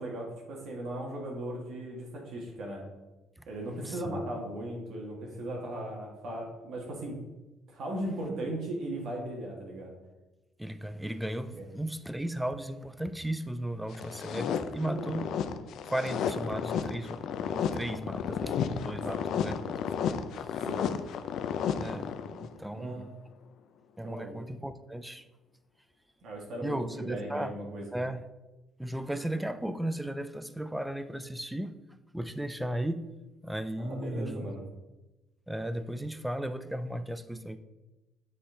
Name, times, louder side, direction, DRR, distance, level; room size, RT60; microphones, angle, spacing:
voice 1, 0.0-2.8 3.5-7.2 7.7-9.9 11.6-11.7 14.8-15.2 19.1-19.2 20.7-20.9 22.7-23.1 24.0-24.3 26.2-27.8 33.8-34.6, right 1 dB, 60° right, -1 dB, 1.5 m, -37 dB
voice 2, 3.4-4.3 10.6-15.3 15.8-19.8 20.0-20.7 21.7-23.1 24.0-25.3 26.6-27.6 27.9-28.2 28.8-31.7 32.1-33.1 33.4-34.5 35.5-37.6, right 1 dB, 5° right, 11 dB, 0.4 m, -36 dB
sound 1, 13.9-22.5, left 7 dB, 65° left, 0.4 m, -33 dB
7.9 x 4.2 x 3.7 m, 1.1 s
cardioid pair, 135°, 0 cm